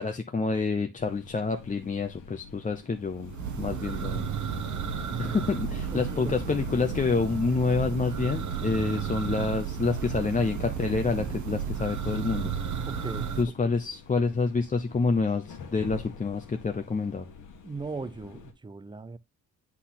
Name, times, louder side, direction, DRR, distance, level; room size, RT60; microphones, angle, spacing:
voice 1, 0.0-4.2 5.2-12.5 13.4-17.3, left 4 dB, 25° left, 0.7 m, -28 dB
sound 1, 1.0-18.5, left 6 dB, 75° left, 1.5 m, -46 dB
Church bell, 3.1-13.4, right 7 dB, 65° right, 1.1 m, -33 dB
voice 2, 5.9-6.3 12.9-13.3 17.6-19.2, right 4 dB, 15° right, 0.5 m, -38 dB
8.2 x 4.1 x 3.9 m
cardioid pair, 85°, 31 cm